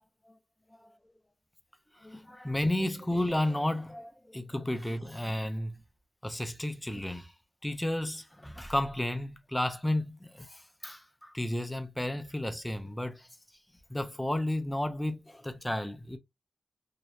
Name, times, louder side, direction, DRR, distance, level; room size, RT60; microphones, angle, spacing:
voice 1, 1.9-5.8 6.2-7.3 7.6-13.3 13.9-16.2, left 1 dB, 10° left, 0.3 m, -32 dB
2.8 x 2.1 x 2.3 m
wide cardioid pair, 135°, 0 cm